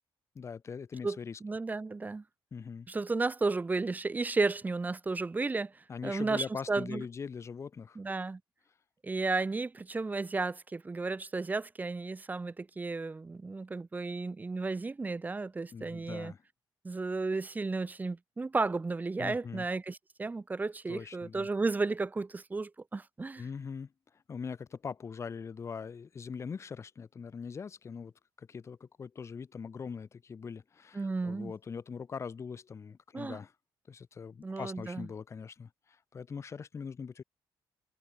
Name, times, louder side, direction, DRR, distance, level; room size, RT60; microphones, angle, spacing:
voice 1, 0.3-1.4 2.5-2.9 5.9-8.0 15.7-16.4 19.2-19.7 20.9-21.5 23.4-28.1 28.4-33.5 33.9-37.2, left 6 dB, 30° left, 1.0 m, -42 dB
voice 2, 1.0-2.2 2.9-7.0 7.9-8.4 9.0-16.3 16.8-23.4 30.9-31.5 33.1-33.4 34.4-35.1, right 3 dB, 20° right, 1.4 m, -33 dB
cardioid pair, 140°, 9 cm